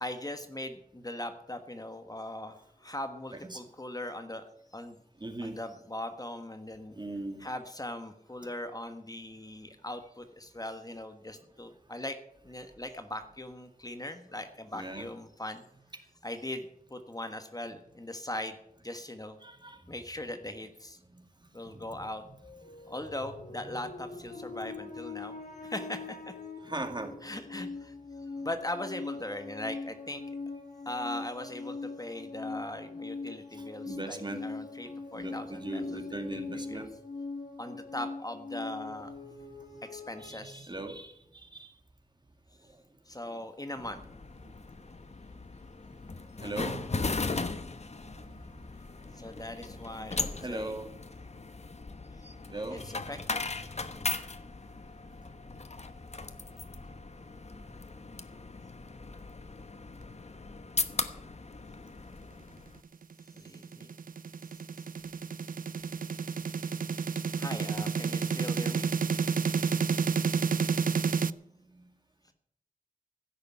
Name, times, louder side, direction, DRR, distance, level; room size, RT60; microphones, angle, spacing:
voice 1, 0.0-4.4 4.7-5.0 5.4-7.0 7.4-12.2 12.4-15.6 16.2-18.6 18.8-19.4 19.9-21.0 21.5-22.2 22.9-25.3 25.6-26.3 27.2-27.9 28.4-30.2 30.8-35.8 36.3-36.9 37.6-39.1 39.8-40.7 43.1-44.0 49.1-50.7 52.7-53.4 63.3-63.9 67.4-68.9, left 1 dB, 25° left, 7 dB, 1.3 m, -40 dB
voice 2, 3.3-3.6 5.2-5.6 7.0-7.5 14.7-15.1 19.4-20.0 21.1-21.2 21.6-22.0 23.7-23.8 24.3-24.4 26.6-27.1 33.5-34.4 35.1-36.9 40.2-41.7 42.6-42.7 43.3-43.4 46.4-46.8 49.2-49.3 49.6-50.0 50.4-50.9 52.5-52.8 71.7-71.8, right 2 dB, 30° right, 6 dB, 2.2 m, -39 dB
sound 1, 22.3-40.3, left 3 dB, 65° left, 2.6 m, -42 dB
sound 2, 43.8-62.8, left 3 dB, 50° left, 1.1 m, -38 dB
sound 3, 63.2-71.3, right 6 dB, 70° right, 0.5 m, -30 dB
16.0 x 6.7 x 9.7 m, 0.73 s
wide cardioid pair, 75°, 15 cm